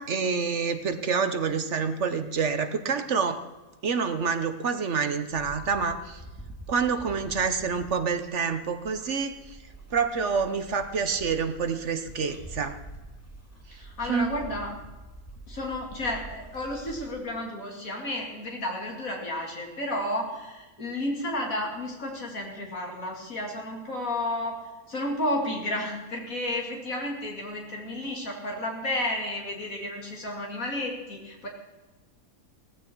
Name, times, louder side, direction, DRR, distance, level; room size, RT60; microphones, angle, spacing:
voice 1, 0.0-3.4 3.8-6.2 6.7-9.6 9.9-12.8 14.1-14.3, right 5 dB, 55° right, 9 dB, 1.2 m, -27 dB
sound 1, 5.3-17.2, right 2 dB, 10° left, 2.0 m, -46 dB
voice 2, 13.7-14.7 15.5-24.5 24.9-31.5, left 1 dB, 60° left, 0 dB, 3.3 m, -32 dB
17.0 x 14.5 x 4.6 m, 1.1 s
omnidirectional pair, 1.6 m